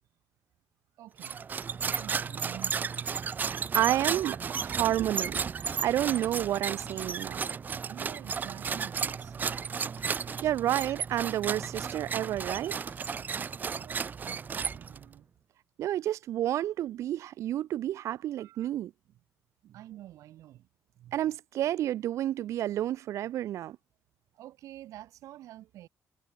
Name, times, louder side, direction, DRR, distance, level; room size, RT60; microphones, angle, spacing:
voice 1, 1.0-1.5 1.7-3.1 6.9-7.2 7.9-9.6 13.4-15.3 18.4-18.7 19.7-20.7 24.3-25.9, right 14 dB, 85° right, 3.9 m, -49 dB
sound 1, 1.2-15.1, right 6 dB, 35° right, 0.9 m, -34 dB
voice 2, 3.4-7.4 10.1-12.9 15.8-18.9 21.1-23.8, right 12 dB, 65° right, 0.4 m, -30 dB
sound 2, 8.7-9.1 9.5-10.2 10.5-10.6 10.9-11.2 11.6-12.0 12.4-13.1 13.4-13.5, left 4 dB, 25° left, 5.2 m, -57 dB
cardioid pair, 130°, 5 cm